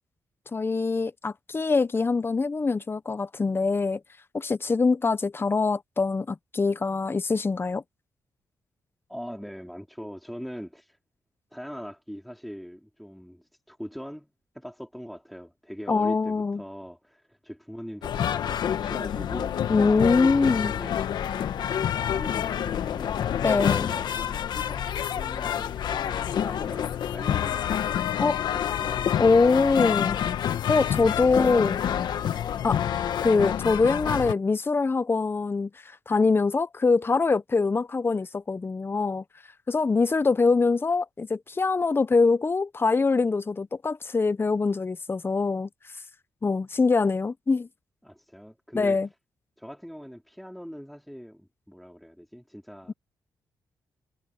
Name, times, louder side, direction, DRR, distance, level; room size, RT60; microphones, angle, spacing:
voice 1, 0.5-4.0 4.3-7.8 15.9-16.6 19.7-20.7 23.4-23.9 28.2-28.4 29.2-30.2 30.7-31.8 32.6-35.7 36.1-39.2 39.7-45.7 46.4-47.7 48.7-49.1 52.9-53.0, left 4 dB, 30° left, 0.9 m, -24 dB
voice 2, 9.1-11.0 11.5-19.8 20.1-21.1 21.6-27.8 28.5-29.2 48.0-49.0 49.6-52.9, equal, ahead, 4.1 m, -42 dB
sound 1, 18.0-34.3, left 9 dB, 75° left, 1.2 m, -28 dB
cardioid pair, 65°, 7 cm